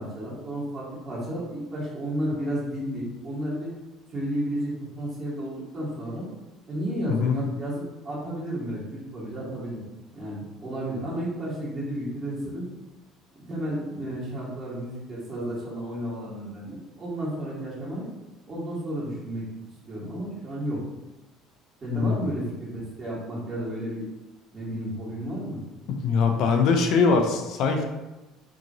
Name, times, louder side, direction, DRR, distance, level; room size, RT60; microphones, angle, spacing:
voice 1, 0.0-3.7 4.1-6.3 6.7-9.8 10.1-12.7 13.5-18.1 18.5-19.4 19.9-20.8 21.8-24.1 24.5-25.6, right 1 dB, 35° right, -7 dB, 1.4 m, -32 dB
voice 2, 21.9-22.2 26.0-27.8, left 5 dB, 65° left, 3 dB, 0.5 m, -22 dB
2.9 x 2.5 x 2.6 m, 1.1 s
supercardioid pair, 85°, 0 cm